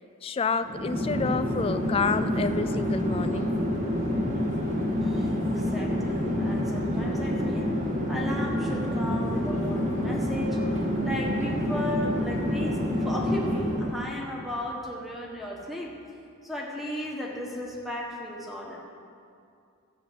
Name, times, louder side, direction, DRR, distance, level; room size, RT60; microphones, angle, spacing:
voice 1, 0.2-3.5, left 5 dB, 25° left, 11 dB, 0.3 m, -29 dB
Chatter / Fixed-wing aircraft airplane, 0.6-14.0, equal, 35° right, 1.9 m, -28 dB
voice 2, 5.0-7.7 8.1-10.6 11.0-15.9 16.4-18.8, equal, ahead, -2 dB, 1.5 m, -35 dB
12.0 x 7.1 x 8.0 m, 2.5 s
head